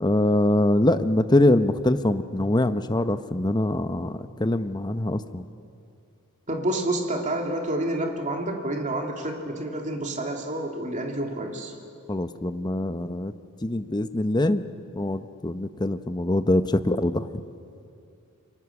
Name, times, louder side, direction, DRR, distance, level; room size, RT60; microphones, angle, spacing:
voice 1, 0.0-4.1 4.4-5.4 12.1-13.3 13.6-14.6 15.0-17.2, left 1 dB, 20° left, 10 dB, 0.8 m, -23 dB
voice 2, 6.5-11.7, right 1 dB, 35° right, 2 dB, 2.7 m, -29 dB
28.0 x 24.5 x 7.2 m, 2.5 s
head